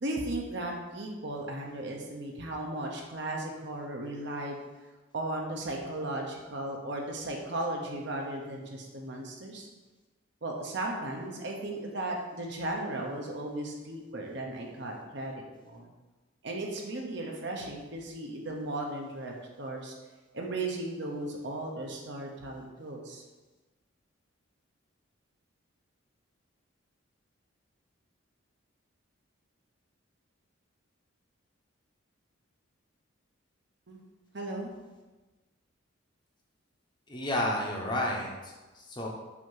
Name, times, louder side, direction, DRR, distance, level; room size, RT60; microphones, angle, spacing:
voice 1, 0.0-4.6 5.1-9.7 10.4-15.3 15.6-15.9 16.4-19.9 20.3-23.2 33.9-34.0 34.3-34.7, right 1 dB, 55° right, 0 dB, 0.9 m, -36 dB
voice 2, 37.1-39.1, left 1 dB, 20° left, -1 dB, 0.8 m, -31 dB
6.1 x 2.8 x 5.5 m, 1.2 s
head